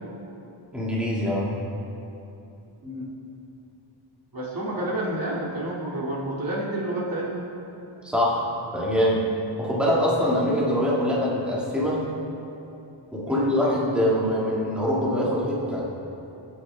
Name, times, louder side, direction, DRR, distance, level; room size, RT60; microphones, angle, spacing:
voice 1, 0.7-1.5 8.0-8.5 8.7-9.3 9.6-12.0 13.1-15.8, equal, ahead, -6 dB, 2.0 m, -23 dB
voice 2, 4.3-7.5 13.2-13.5, right 1 dB, 45° right, -5 dB, 2.4 m, -29 dB
24.0 x 8.2 x 3.5 m, 2.9 s
wide cardioid pair, 165°, 47 cm